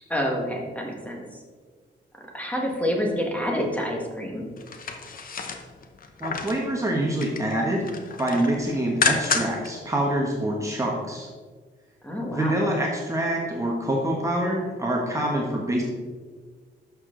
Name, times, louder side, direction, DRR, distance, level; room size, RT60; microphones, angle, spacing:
voice 1, 0.1-1.4 2.3-4.5 12.0-12.6, equal, 5° left, 0 dB, 1.5 m, -28 dB
sound 1, 4.6-6.6 7.0-7.5 7.8-9.7 10.1-10.2, left 5 dB, 45° left, 1.0 m, -29 dB
voice 2, 6.2-11.3 12.3-15.8, right 1 dB, 15° right, -2 dB, 1.2 m, -26 dB
11.5 x 6.6 x 3.8 m, 1.5 s
wide cardioid pair, 155°, 19 cm